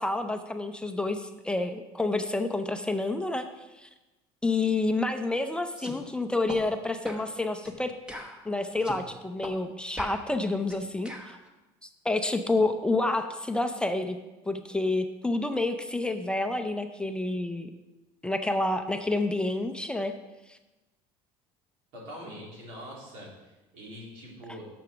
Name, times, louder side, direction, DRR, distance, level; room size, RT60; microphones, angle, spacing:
voice 1, 0.0-3.5 3.8-3.9 4.4-7.9 8.5-11.1 11.8-14.2 14.4-17.7 18.2-20.1 20.5-20.6, left 2 dB, 10° left, 6 dB, 0.5 m, -29 dB
sound 1, 5.8-6.0 6.5-6.6 7.0-7.3 7.6-7.8 8.1-9.0 9.4-9.6 10.0-11.4, equal, 10° right, 1.0 m, -40 dB
voice 2, 21.9-24.7, equal, 85° right, -3 dB, 3.2 m, -43 dB
7.0 x 6.4 x 6.1 m, 1.1 s
cardioid pair, 125°, 12 cm